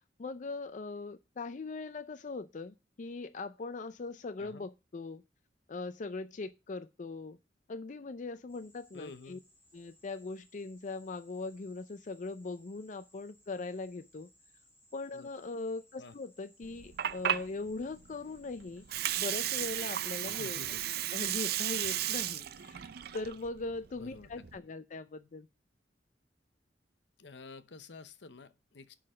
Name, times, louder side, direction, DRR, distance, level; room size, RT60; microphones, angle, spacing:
voice 1, 0.2-5.2 5.7-7.4 7.7-9.4 9.7-14.3 14.9-18.8 19.2-20.6 21.1-25.5, left 3 dB, 45° left, 0.5 m, -40 dB
sound 1, 8.5-22.7, left 1 dB, 15° left, 3.9 m, -65 dB
voice 2, 8.9-9.4 15.1-15.3 16.0-16.1 20.3-20.8 23.9-24.5 27.2-29.0, left 3 dB, 75° left, 0.8 m, -50 dB
Water, 16.6-24.6, right 11 dB, 60° right, 0.5 m, -35 dB
11.0 x 3.9 x 6.2 m
head